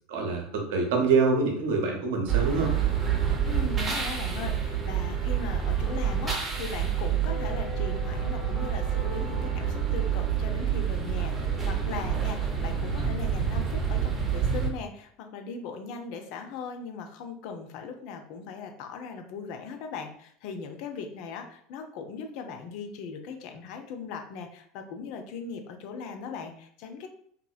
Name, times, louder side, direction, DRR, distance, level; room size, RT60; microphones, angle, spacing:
voice 1, 0.1-2.7, right 4 dB, 60° right, 2 dB, 0.6 m, -25 dB
sound 1, 2.3-14.7, right 8 dB, 15° right, 0.6 m, -28 dB
voice 2, 3.4-27.1, left 5 dB, 50° left, 5 dB, 0.4 m, -39 dB
2.9 x 2.5 x 2.2 m, 0.64 s
figure-of-eight pair, 75°, 0 cm